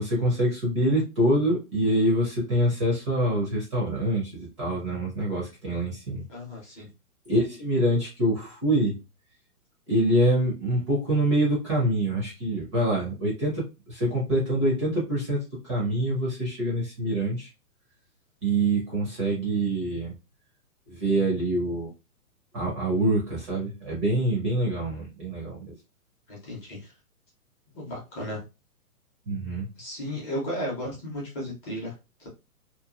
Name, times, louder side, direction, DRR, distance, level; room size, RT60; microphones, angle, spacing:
voice 1, 0.0-6.2 7.3-9.0 9.9-17.5 18.4-20.1 20.9-21.9 22.5-25.8 29.3-29.7, right 1 dB, 20° right, -3 dB, 0.6 m, -25 dB
voice 2, 6.3-6.9 26.3-26.9 27.7-28.4 29.8-32.3, equal, 15° left, -5 dB, 0.7 m, -35 dB
2.9 x 2.4 x 2.4 m, 0.27 s
hypercardioid pair, 155°, 46 cm